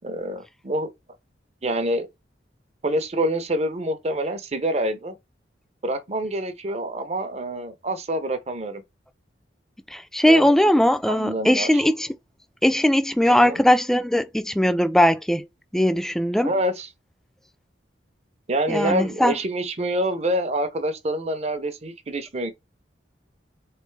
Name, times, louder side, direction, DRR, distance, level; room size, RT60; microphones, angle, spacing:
voice 1, 0.0-0.9 1.6-2.1 2.8-5.1 5.8-8.8 10.2-10.5 11.1-11.8 13.3-13.6 16.4-16.9 18.5-22.5, right 1 dB, 35° right, 0.7 m, -26 dB
voice 2, 9.9-12.1 12.6-15.5 15.7-16.5 18.7-19.3, equal, ahead, 0.3 m, -19 dB
4.0 x 3.2 x 3.2 m
head